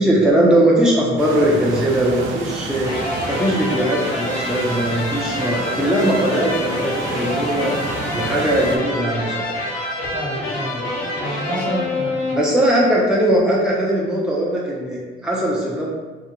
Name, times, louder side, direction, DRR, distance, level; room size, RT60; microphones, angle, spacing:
voice 1, 0.0-7.7 8.1-9.6 12.3-15.9, right 1 dB, 5° right, -5 dB, 0.4 m, -19 dB
sound 1, 1.2-8.8, right 2 dB, 80° right, 0.4 m, -30 dB
sound 2, 2.8-12.8, left 1 dB, 80° left, 0.8 m, -27 dB
voice 2, 10.1-12.2, equal, 65° right, -7 dB, 1.0 m, -29 dB
2.3 x 2.1 x 2.8 m, 1.3 s
cardioid pair, 90°, 20 cm